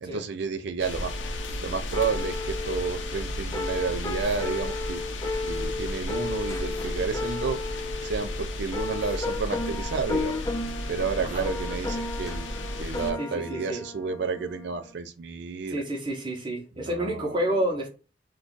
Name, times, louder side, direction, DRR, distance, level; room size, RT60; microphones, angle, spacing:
voice 1, 0.0-1.1 1.6-5.0 5.4-7.6 8.0-10.4 10.9-12.5 12.8-15.8 16.8-17.4, right 5 dB, 65° right, 0.4 m, -31 dB
sound 1, 0.8-13.1, left 1 dB, 90° left, 0.6 m, -34 dB
sound 2, 0.9-14.9, left 3 dB, 20° left, 0.4 m, -34 dB
voice 2, 13.2-13.8 14.2-14.3 15.7-17.9, right 1 dB, 25° right, 0.7 m, -29 dB
2.5 x 2.3 x 3.7 m
head